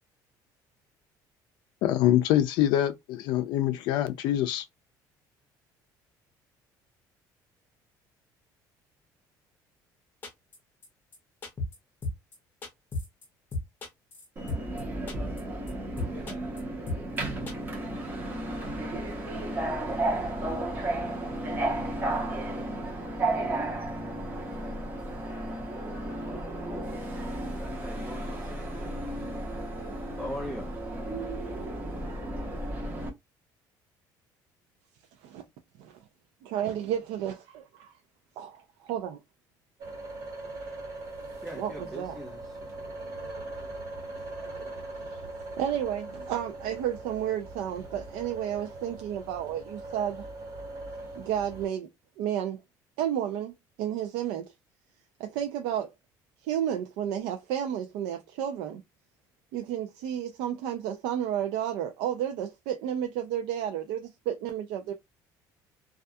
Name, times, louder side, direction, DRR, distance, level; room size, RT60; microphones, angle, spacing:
voice 1, 1.8-4.6, left 12 dB, 65° left, 0.4 m, -25 dB
sound 1, 10.2-10.6 10.8-10.9 11.1-11.2 11.4-11.8 12.0-12.3 12.6-13.2 13.5-14.8 15.1-15.4 15.7-15.8 16.0-16.6 16.9-17.2 17.5-17.6, left 2 dB, 25° left, 0.7 m, -34 dB
Subway metro underground, 14.4-33.1, right 1 dB, 25° right, 0.8 m, -33 dB
voice 2, 27.5-29.0 30.2-30.7 41.4-42.9, equal, ahead, 0.4 m, -41 dB
voice 3, 36.4-37.9 38.4-39.2 41.5-42.2 43.2-43.7 44.4-44.8 45.6-50.2 51.2-51.9 52.2-52.6 53.0-54.5 55.2-55.9 56.4-58.8 59.5-64.9, right 10 dB, 90° right, 0.4 m, -32 dB
sound 2, 39.8-51.7, right 2 dB, 45° right, 1.2 m, -41 dB
2.3 x 2.2 x 2.6 m
cardioid pair, 170°, 8 cm